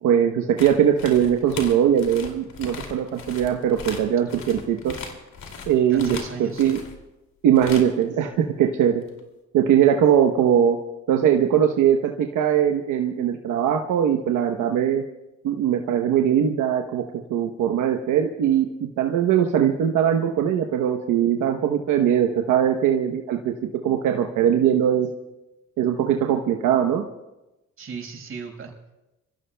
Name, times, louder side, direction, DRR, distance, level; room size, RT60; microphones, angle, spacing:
voice 1, 0.0-4.9 5.7-6.8 7.4-9.0 9.5-10.8 11.1-15.0 15.4-17.0 17.3-23.5 23.8-25.1 25.8-27.0, right 9 dB, 85° right, 3 dB, 1.0 m, -21 dB
sound 1, 0.6-7.0 7.5-8.0 9.1-9.2, left 5 dB, 65° left, 2.6 m, -38 dB
voice 2, 5.9-6.7 27.8-28.7, right 5 dB, 45° right, 0 dB, 5.4 m, -36 dB
27.0 x 15.5 x 2.2 m, 0.98 s
cardioid pair, 90°, 30 cm